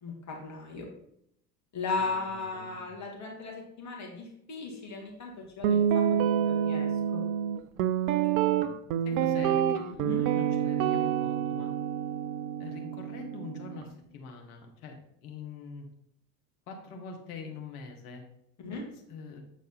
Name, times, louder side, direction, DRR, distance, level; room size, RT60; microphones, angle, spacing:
voice 1, 0.0-0.9 1.7-5.3 5.6-7.2 10.0-10.2 18.6-18.8, left 3 dB, 35° left, -1 dB, 2.2 m, -36 dB
voice 2, 2.0-2.9 9.1-11.7 12.6-15.9 16.7-18.2 18.7-18.8 19.1-19.4, left 4 dB, 65° left, 2 dB, 1.7 m, -44 dB
Guitar, 5.6-13.8, right 9 dB, 60° right, 0.6 m, -27 dB
8.3 x 4.1 x 4.1 m, 0.74 s
figure-of-eight pair, 70°, 48 cm